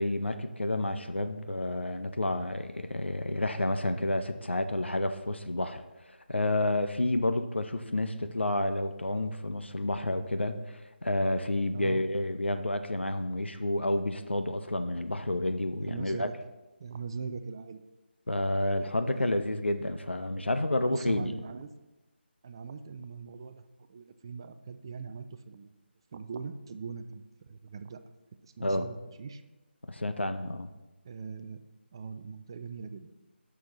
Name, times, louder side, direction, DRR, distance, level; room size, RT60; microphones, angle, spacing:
voice 1, 0.0-5.8 6.1-16.3 18.3-21.4 28.6-28.9 29.9-30.7, left 1 dB, 80° left, 8 dB, 0.7 m, -30 dB
voice 2, 15.8-16.3 16.8-17.8 19.1-19.3 20.8-21.7 22.4-25.8 26.1-28.0 28.4-29.4 31.0-31.6 31.9-33.1, right 5 dB, 25° right, 10 dB, 0.4 m, -41 dB
17.0 x 6.1 x 3.0 m, 1.1 s
figure-of-eight pair, 155°, 6 cm